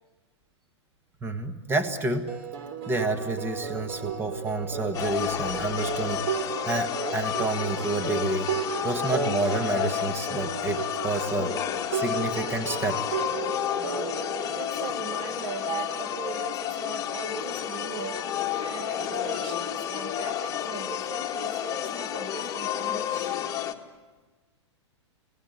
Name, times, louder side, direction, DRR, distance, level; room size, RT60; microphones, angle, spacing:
voice 1, 1.2-2.3 2.9-8.5 8.8-11.6 11.9-13.2, right 2 dB, 15° right, 8 dB, 1.8 m, -29 dB
sound 1, 1.9-16.4 17.9-21.0, right 6 dB, 55° right, 3.4 m, -35 dB
sound 2, 4.9-23.7, left 10 dB, 25° left, 1.8 m, -31 dB
voice 2, 14.5-18.2 18.6-23.4, right 5 dB, 30° right, 7 dB, 1.6 m, -39 dB
30.0 x 18.5 x 9.8 m, 1.3 s
hypercardioid pair, 125°, 15 cm